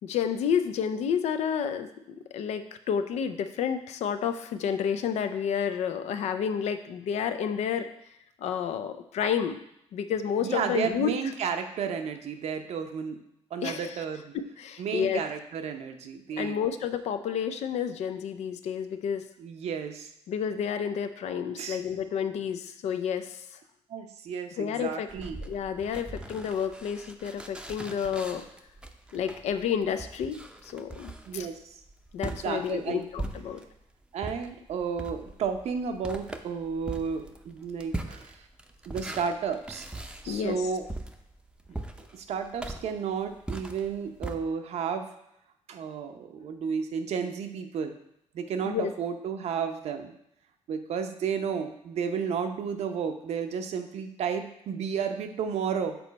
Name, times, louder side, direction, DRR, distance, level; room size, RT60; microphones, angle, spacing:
voice 1, 0.0-7.9 8.4-9.6 9.9-11.3 13.6-14.0 14.3-15.3 16.4-19.2 20.3-23.5 24.6-25.1 25.4-28.4 29.1-31.5 32.1-33.6 40.3-40.7 48.6-48.9, left 7 dB, 80° left, 9 dB, 0.5 m, -30 dB
voice 2, 10.4-13.2 13.5-14.3 14.8-16.6 19.4-20.1 21.6-21.8 23.9-25.4 31.3-31.7 32.2-33.0 34.1-38.4 38.9-39.9 40.2-40.9 42.1-45.1 45.7-47.9 48.3-50.1 50.7-56.0, right 6 dB, 70° right, 6 dB, 0.7 m, -32 dB
sound 1, 25.1-33.8 34.2-44.4, right 2 dB, 10° right, 0.6 m, -40 dB
7.0 x 4.3 x 4.1 m, 0.78 s
cardioid pair, 85°, 11 cm